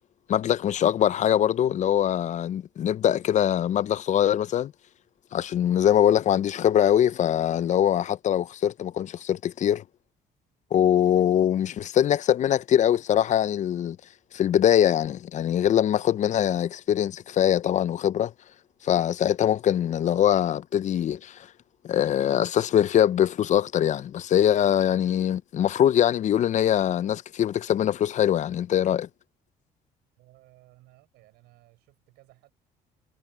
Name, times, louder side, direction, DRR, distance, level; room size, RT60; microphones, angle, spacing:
voice 1, 0.3-4.7 5.3-9.8 10.7-14.0 14.3-18.3 18.8-21.5 21.8-29.1, left 10 dB, 45° left, 0.5 m, -23 dB
voice 2, 30.2-32.5, right 19 dB, 90° right, 6.3 m, -57 dB
cardioid pair, 110°, 17 cm